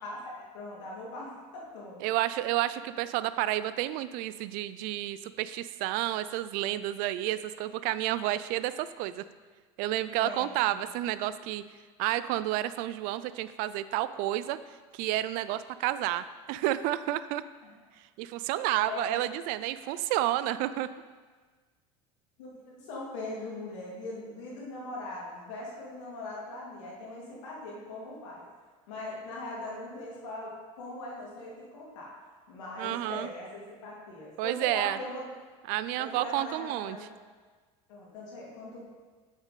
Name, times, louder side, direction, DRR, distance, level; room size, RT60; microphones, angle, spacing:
voice 1, 0.0-2.1 10.2-10.4 10.8-10.9 17.6-17.7 18.7-19.2 19.8-19.9 22.4-28.4 28.9-32.1 32.5-35.2 36.0-37.1 37.9-38.8, left 2 dB, 80° left, -4 dB, 2.3 m, -40 dB
voice 2, 2.0-9.2 9.8-11.6 12.0-14.6 14.9-17.4 18.2-20.9 32.8-33.3 34.4-35.0 35.7-37.0, right 14 dB, 65° right, 14 dB, 0.4 m, -30 dB
7.3 x 6.1 x 4.1 m, 1.4 s
hypercardioid pair, 85°, 16 cm